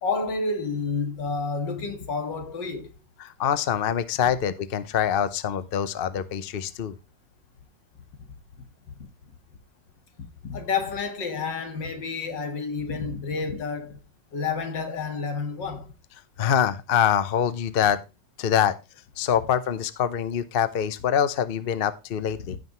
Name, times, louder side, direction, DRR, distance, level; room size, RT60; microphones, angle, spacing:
voice 1, 0.0-2.9 10.4-14.0 14.3-15.9 22.5-22.6, left 4 dB, 75° left, 2.4 m, -29 dB
voice 2, 3.2-7.0 16.4-18.0 18.4-18.7 19.2-22.6, left 9 dB, 50° left, 0.7 m, -24 dB
16.0 x 5.7 x 3.0 m
omnidirectional pair, 2.0 m